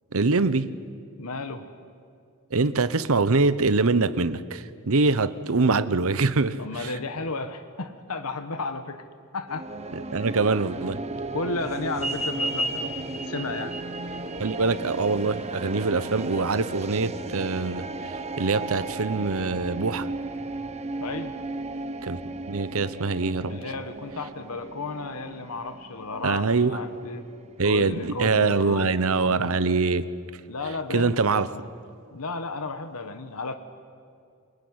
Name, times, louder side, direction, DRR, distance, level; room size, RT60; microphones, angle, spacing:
voice 1, 0.1-0.7 2.5-6.9 10.1-11.0 14.4-20.1 22.0-22.2 22.5-23.6 26.2-26.8 27.6-30.1 30.9-31.5, right 3 dB, 70° right, 0.9 m, -24 dB
voice 2, 1.2-1.7 6.6-9.0 9.3-9.7 10.1-10.3 11.3-13.8 21.0-21.3 23.5-27.3 27.6-28.9 29.2-29.5 30.5-31.2 32.1-33.5, left 3 dB, 75° left, 1.2 m, -33 dB
sound 1, 9.5-27.7, right 2 dB, 30° right, 1.0 m, -36 dB
sound 2, 11.9-16.9, right 1 dB, 5° right, 3.3 m, -34 dB
24.5 x 21.5 x 9.7 m
head